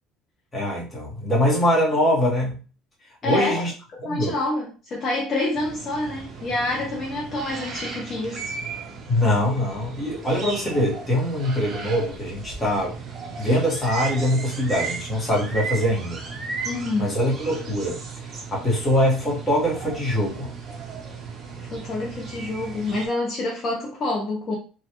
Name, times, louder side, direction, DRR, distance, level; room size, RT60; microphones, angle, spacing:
voice 1, 0.5-2.6 3.2-3.7 4.0-4.3 9.1-12.9 13.4-16.2 17.0-18.0 18.5-20.5, left 1 dB, 15° left, -4 dB, 1.1 m, -23 dB
voice 2, 3.2-3.6 4.0-8.5 16.6-17.1 21.7-24.6, left 2 dB, 35° left, -2 dB, 0.6 m, -27 dB
sound 1, 5.5-23.1, right 4 dB, 35° right, 0.7 m, -35 dB
3.1 x 2.3 x 2.9 m, 0.36 s
cardioid pair, 140°, 0 cm